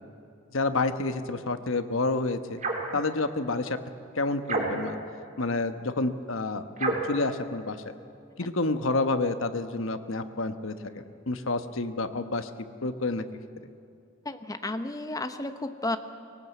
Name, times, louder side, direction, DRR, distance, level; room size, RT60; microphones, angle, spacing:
voice 1, 0.5-2.6 2.9-3.8 4.1-5.0 5.4-7.9 8.4-12.5 12.8-13.2, left 3 dB, 70° left, 9 dB, 1.1 m, -29 dB
sound 1, 2.6-3.0 4.4-5.0 6.8-7.2, right 2 dB, 35° right, 3.0 m, -29 dB
voice 2, 14.2-16.0, left 2 dB, 15° left, 9 dB, 0.9 m, -32 dB
21.0 x 18.5 x 8.3 m, 2.5 s
head